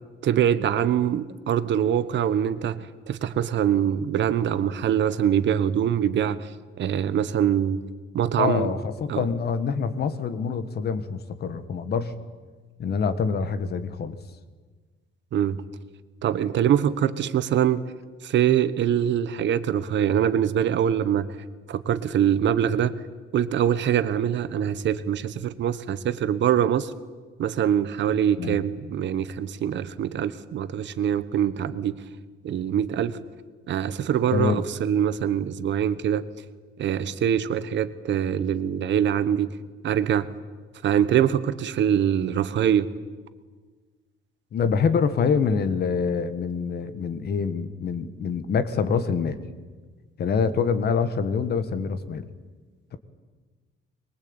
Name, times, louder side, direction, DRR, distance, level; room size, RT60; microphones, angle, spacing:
voice 1, 0.2-6.5 6.8-7.8 8.1-8.7 9.1-9.2 15.3-15.6 16.2-17.8 18.2-21.3 21.7-22.9 23.3-26.9 27.4-31.9 32.4-33.2 33.7-36.2 36.8-39.5 39.8-40.3 40.8-42.9, right 9 dB, 60° right, 13 dB, 1.3 m, -23 dB
voice 2, 8.4-12.1 12.8-14.2 28.4-28.6 34.3-34.6 44.5-49.4 50.2-52.3, left 6 dB, 50° left, 11 dB, 1.7 m, -25 dB
24.0 x 22.5 x 9.0 m, 1.4 s
cardioid pair, 155°, 21 cm